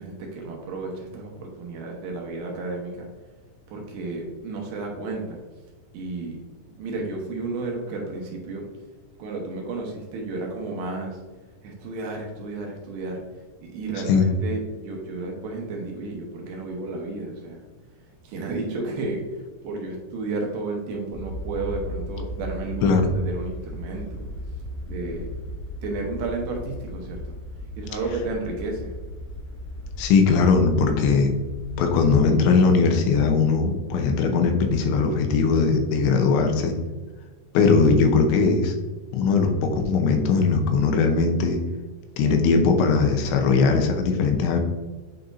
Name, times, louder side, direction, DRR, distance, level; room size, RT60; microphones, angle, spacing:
voice 1, 0.0-3.1 3.7-5.4 5.9-6.4 6.8-8.7 9.2-11.2 11.6-13.2 13.6-17.6 18.2-24.3 24.9-25.3 25.8-27.3 27.7-29.0, right 3 dB, 75° right, 0 dB, 2.7 m, -32 dB
sound 1, 21.1-32.2, left 1 dB, 45° left, 2.2 m, -36 dB
voice 2, 30.0-31.3 31.8-36.8 37.5-38.8 39.1-41.6 42.2-44.6, left 4 dB, 85° left, 4 dB, 3.0 m, -20 dB
8.9 x 4.2 x 2.6 m, 1.3 s
omnidirectional pair, 5.3 m